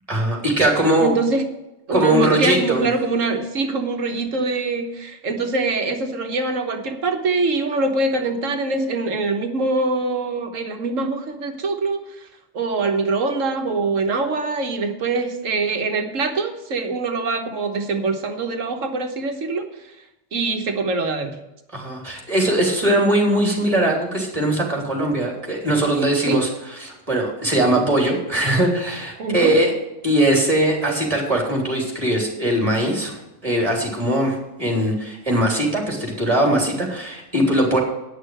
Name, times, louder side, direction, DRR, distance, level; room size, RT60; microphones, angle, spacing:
voice 1, 0.1-1.1 1.9-2.9 21.7-29.7 30.0-37.8, right 1 dB, 25° right, 0 dB, 3.3 m, -20 dB
voice 2, 1.0-1.4 1.9-12.3 12.5-19.7 20.3-21.4 26.3-26.4 29.2-29.6, right 3 dB, 85° right, 5 dB, 1.6 m, -23 dB
10.0 x 6.5 x 7.8 m, 0.94 s
omnidirectional pair, 1.3 m